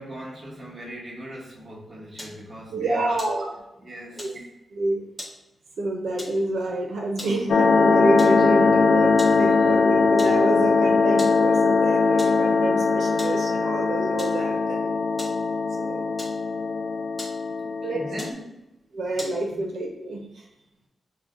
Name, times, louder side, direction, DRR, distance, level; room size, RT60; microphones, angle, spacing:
voice 1, 0.0-3.2 3.8-4.4 9.6-9.8 17.5-18.4 19.4-19.6, equal, 35° right, 1.0 m, -40 dB
sound 1, 2.2-2.5 3.1-3.8 4.2-4.4 5.2-5.4 6.2-6.5 7.0-7.5 8.2-8.4 9.2-9.5 9.7-9.8 10.2-10.5 11.2-11.5 12.2-12.5 13.2-13.4 14.2-14.4 15.2-15.4 16.2-16.7 17.2-17.5 18.2-18.4 19.2-19.4, left 1 dB, 15° left, 0.9 m, -40 dB
voice 2, 2.7-3.6 4.2-4.4 4.7-5.0 5.8-14.9 15.8-16.2 17.8-18.0 18.9-20.5, right 2 dB, 90° right, 0.5 m, -28 dB
sound 2, 7.5-18.3, left 4 dB, 90° left, 0.3 m, -21 dB
5.9 x 2.1 x 2.5 m
wide cardioid pair, 125°, 0 cm